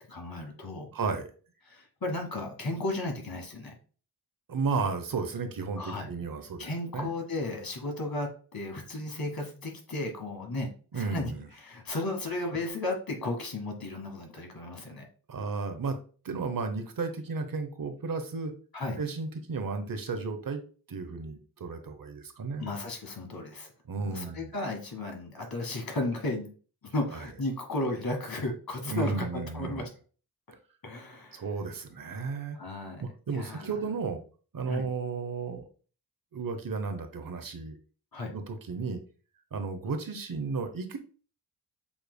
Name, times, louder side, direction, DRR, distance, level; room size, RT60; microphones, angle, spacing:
voice 1, 0.1-0.9 1.6-3.7 5.8-6.1 6.6-15.0 18.7-19.0 22.6-23.7 24.1-26.5 26.8-29.9 30.5-30.6 30.8-31.5 32.5-33.0 33.3-33.7 34.7-34.9 38.1-38.3, left 2 dB, 60° left, 3 dB, 1.6 m, -34 dB
voice 2, 0.9-1.3 4.5-6.7 6.9-7.2 10.9-11.4 15.3-16.0 16.2-18.5 19.0-20.6 20.9-22.7 23.9-24.5 28.9-29.9 31.3-32.6 33.0-34.2 34.5-35.7 36.3-37.8 38.3-39.0 39.5-41.0, right 4 dB, 55° right, 7 dB, 0.9 m, -33 dB
7.1 x 3.2 x 2.2 m, 0.39 s
cardioid pair, 45°, 41 cm